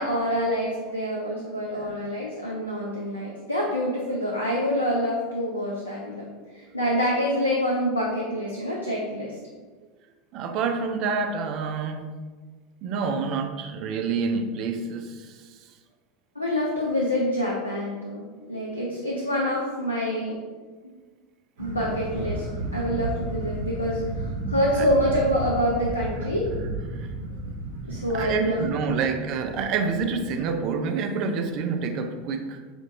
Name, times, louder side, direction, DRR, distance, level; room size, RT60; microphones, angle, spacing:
voice 1, 0.0-9.4 16.4-20.4 21.6-22.5 22.7-26.5 27.9-28.6 28.8-29.0, equal, 85° left, -4 dB, 0.5 m, -26 dB
voice 2, 10.3-12.1 12.8-15.4 26.9-27.1 28.1-32.6, right 5 dB, 45° right, 5 dB, 0.4 m, -27 dB
sound 1, 21.6-30.6, right 2 dB, 70° right, 0.9 m, -33 dB
5.1 x 2.6 x 2.5 m, 1.4 s
figure-of-eight pair, 80°, 0 cm